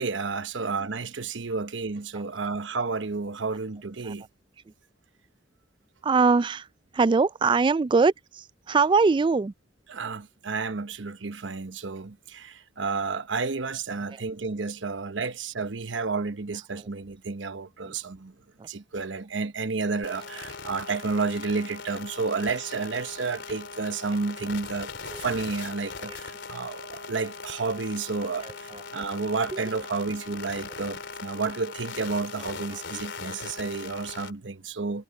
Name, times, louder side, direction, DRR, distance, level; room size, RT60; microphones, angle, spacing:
voice 1, 0.0-4.2 9.9-18.3 18.7-24.9 25.2-28.5 28.9-35.0, right 4 dB, 80° right, 1.0 m, -31 dB
voice 2, 6.0-6.7 6.9-9.5 14.1-14.2 16.8-16.9 17.8-18.0 18.6-18.7 25.1-25.2 26.0-26.2 28.4-28.8 29.5-29.8 32.7-32.8, right 4 dB, 25° right, 0.3 m, -23 dB
sound 1, 20.0-34.3, left 5 dB, 70° left, 3.7 m, -40 dB
head